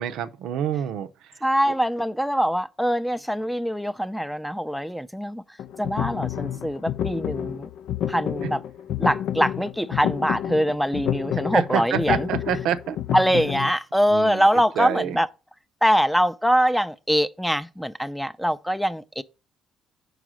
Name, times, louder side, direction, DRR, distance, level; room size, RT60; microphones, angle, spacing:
voice 1, 0.0-1.4 11.5-13.0 14.1-15.2, right 9 dB, 75° right, 0.6 m, -28 dB
voice 2, 1.4-5.4 5.8-7.7 8.1-8.6 9.0-12.3 13.1-15.3 15.8-19.2, equal, ahead, 0.5 m, -23 dB
sound 1, 5.6-13.7, left 10 dB, 70° left, 0.3 m, -29 dB
4.9 x 4.7 x 6.2 m
supercardioid pair, 70°, 0 cm